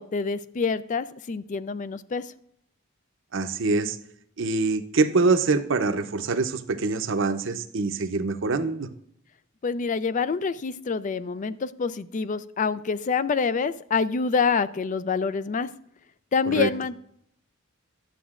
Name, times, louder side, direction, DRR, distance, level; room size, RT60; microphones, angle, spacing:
voice 1, 0.0-2.3 9.6-15.7 16.3-17.0, left 5 dB, 40° left, 15 dB, 0.4 m, -26 dB
voice 2, 3.3-4.0 4.4-8.9 16.5-16.7, right 3 dB, 65° right, 8 dB, 0.7 m, -24 dB
11.5 x 7.9 x 2.5 m, 0.70 s
head